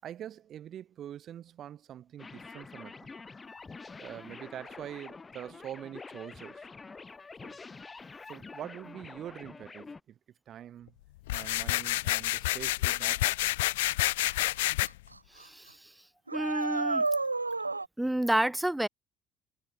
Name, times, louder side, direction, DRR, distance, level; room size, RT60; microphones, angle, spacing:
voice 1, 0.0-3.1 4.0-6.6 7.4-7.6 8.3-10.2 10.5-10.9 11.3-13.6, right 10 dB, 45° right, 6.2 m, -44 dB
sound 1, 2.2-10.0, left 4 dB, 25° left, 5.6 m, -47 dB
sound 2, 11.3-14.9, left 19 dB, 70° left, 2.3 m, -29 dB
sound 3, 14.3-14.4 14.9-15.1 15.4-15.5 16.3-17.9, right 3 dB, 85° right, 0.9 m, -30 dB
voice 2, 15.3-15.9 16.3-17.1 18.0-18.9, right 1 dB, 5° right, 2.5 m, -29 dB
figure-of-eight pair, 55°, 0 cm